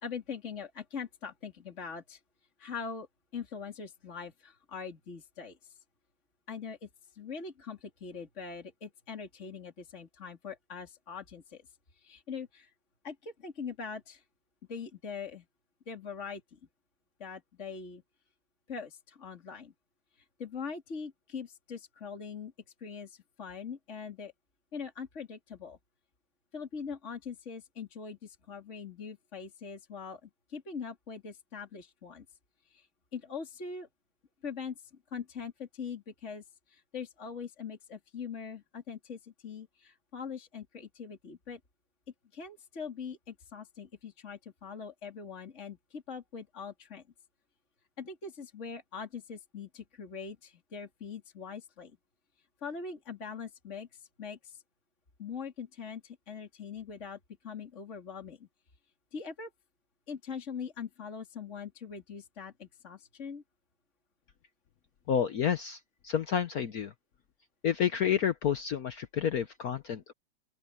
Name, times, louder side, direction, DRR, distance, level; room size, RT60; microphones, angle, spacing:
voice 1, 0.0-2.2 2.6-3.1 3.3-5.6 6.5-6.9 7.2-11.6 12.0-12.7 13.0-14.2 14.7-15.4 15.9-16.6 17.2-18.0 18.7-19.7 20.4-22.5 22.8-24.3 24.7-25.8 26.5-32.2 32.7-32.8 33.1-33.9 34.4-34.8 35.1-36.4 36.7-41.6 42.3-47.0 48.0-51.9 52.6-53.9 54.2-54.6 55.2-57.2 57.4-58.5 59.1-59.5 60.1-63.4, left 6 dB, 35° left, 3.2 m, -42 dB
voice 2, 65.1-66.9 67.6-70.1, left 8 dB, 60° left, 1.0 m, -30 dB
open air
omnidirectional pair, 2.3 m